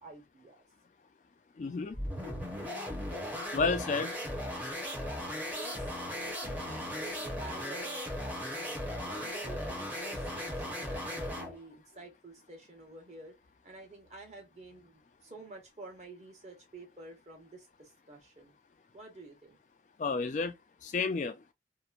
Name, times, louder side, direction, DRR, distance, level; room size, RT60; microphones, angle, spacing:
voice 1, 0.0-0.6 3.2-3.8 5.4-8.0 8.5-13.3 13.6-18.5 18.9-19.6, right 2 dB, 40° right, 1.1 m, -50 dB
voice 2, 1.6-2.0 3.5-4.1 20.0-20.5 20.8-21.4, left 4 dB, 45° left, 0.3 m, -31 dB
sound 1, 1.9-11.6, equal, 10° right, 0.7 m, -37 dB
2.9 x 2.1 x 2.4 m
head